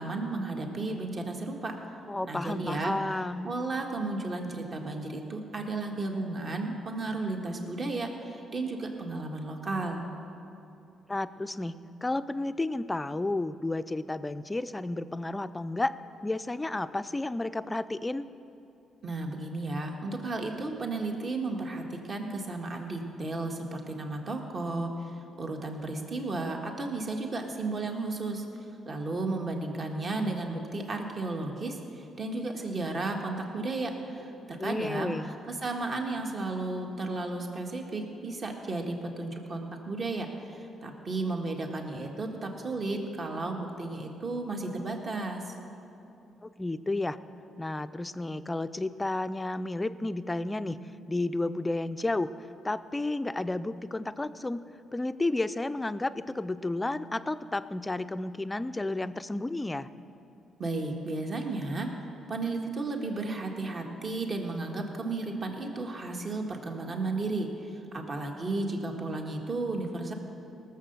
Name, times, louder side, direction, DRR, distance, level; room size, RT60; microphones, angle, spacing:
voice 1, 0.0-1.7 2.2-2.9 3.4-10.1 19.0-28.4 28.8-45.5 60.6-61.9 62.3-70.1, right 2 dB, 45° right, 2 dB, 1.6 m, -33 dB
voice 2, 2.1-3.5 11.1-16.0 16.2-18.3 34.6-35.3 46.4-47.2 47.6-50.8 51.1-52.3 52.6-54.6 54.9-59.9, left 2 dB, 15° left, 13 dB, 0.4 m, -32 dB
18.5 x 6.9 x 6.7 m, 2.8 s
cardioid pair, 90°, 0 cm